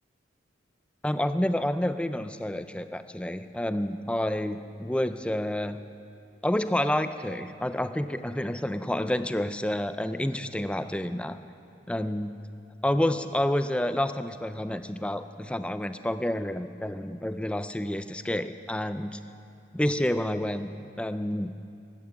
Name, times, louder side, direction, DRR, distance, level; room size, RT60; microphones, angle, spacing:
voice 1, 1.0-5.8 6.4-11.4 11.9-12.3 12.8-19.2 19.7-21.5, left 1 dB, 5° left, 11 dB, 0.4 m, -29 dB
16.0 x 13.0 x 6.1 m, 2.5 s
head